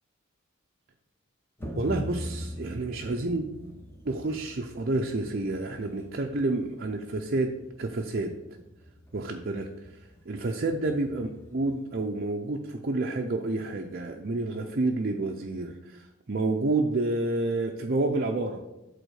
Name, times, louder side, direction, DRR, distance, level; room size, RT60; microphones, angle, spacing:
sound 1, 1.6-12.2, equal, 10° left, 0.9 m, -44 dB
voice 1, 1.7-3.4 4.1-7.5 7.8-8.3 9.1-9.7 10.3-16.0 16.3-18.6, right 2 dB, 45° right, 2 dB, 0.6 m, -29 dB
8.1 x 4.2 x 6.3 m, 0.95 s
head